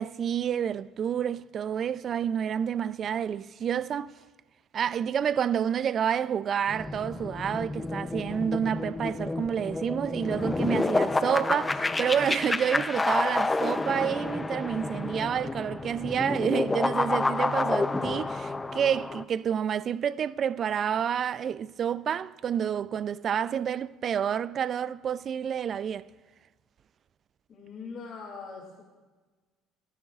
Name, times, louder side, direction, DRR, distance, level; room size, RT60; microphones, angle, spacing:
voice 1, 0.0-4.1 4.7-26.1, right 8 dB, 45° right, 0.3 m, -29 dB
sound 1, 6.7-19.2, left 3 dB, 15° left, 0.5 m, -29 dB
voice 2, 27.5-28.8, left 5 dB, 45° left, 2.3 m, -41 dB
29.5 x 10.5 x 2.4 m
supercardioid pair, 100°, 0 cm